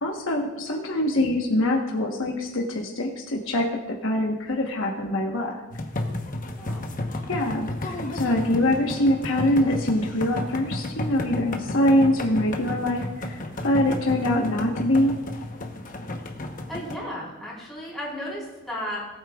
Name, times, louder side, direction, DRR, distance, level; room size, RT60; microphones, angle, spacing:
voice 1, 0.0-3.7 4.0-5.6 7.3-15.1, left 1 dB, 65° left, 0 dB, 1.1 m, -24 dB
sound 1, 5.7-17.0, left 1 dB, 40° left, 0.9 m, -32 dB
voice 2, 6.6-6.9 16.7-19.0, equal, ahead, -6 dB, 3.9 m, -34 dB
18.5 x 8.6 x 2.3 m, 1.1 s
head